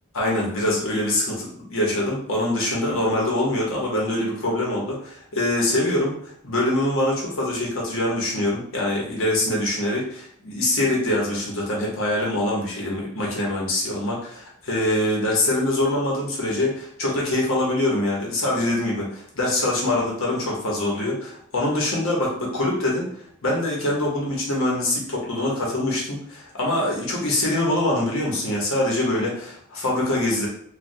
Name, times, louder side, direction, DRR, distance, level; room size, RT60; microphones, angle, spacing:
voice 1, 0.1-6.2 6.4-23.1 23.4-30.5, left 1 dB, 65° left, -3 dB, 0.9 m, -24 dB
3.2 x 2.2 x 2.6 m, 0.64 s
head